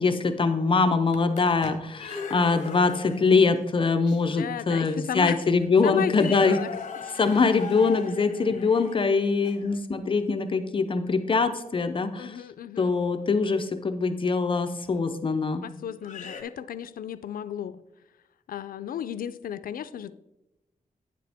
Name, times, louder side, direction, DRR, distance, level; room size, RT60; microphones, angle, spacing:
voice 1, 0.0-6.6 7.1-12.4 12.8-15.7, left 4 dB, 35° left, 8 dB, 0.5 m, -23 dB
sound 1, 0.9-3.4 4.1-4.2 5.0-5.1 5.5-5.7 6.1-9.7 12.9-13.1 14.8-14.9 16.0-16.4, left 6 dB, 60° left, 1.0 m, -39 dB
voice 2, 4.3-5.4 5.8-6.7 8.5-8.7 12.2-12.9 15.6-17.8 18.5-20.1, left 9 dB, 85° left, 14 dB, 0.4 m, -34 dB
9.4 x 7.5 x 3.5 m, 0.95 s
wide cardioid pair, 175°, 14 cm